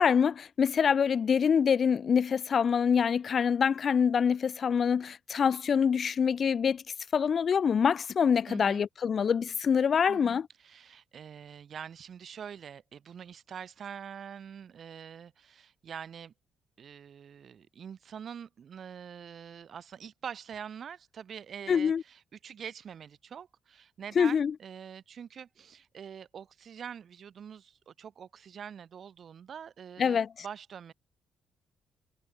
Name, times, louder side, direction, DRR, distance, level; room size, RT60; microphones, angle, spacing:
voice 1, 0.0-6.8 7.1-10.4 21.7-22.0 24.2-24.5 30.0-30.3, left 7 dB, 50° left, 0.3 m, -25 dB
voice 2, 8.4-8.8 10.1-16.3 16.8-30.9, right 8 dB, 55° right, 1.2 m, -45 dB
cardioid pair, 90°, 0 cm